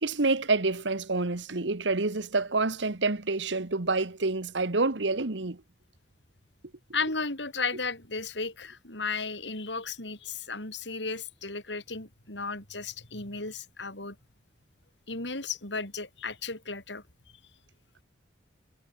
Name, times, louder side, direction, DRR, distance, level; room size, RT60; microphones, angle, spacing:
voice 1, 0.0-5.6, right 3 dB, 80° right, 1.4 m, -28 dB
voice 2, 6.9-14.2 15.1-17.0, left 4 dB, 80° left, 7.2 m, -34 dB
head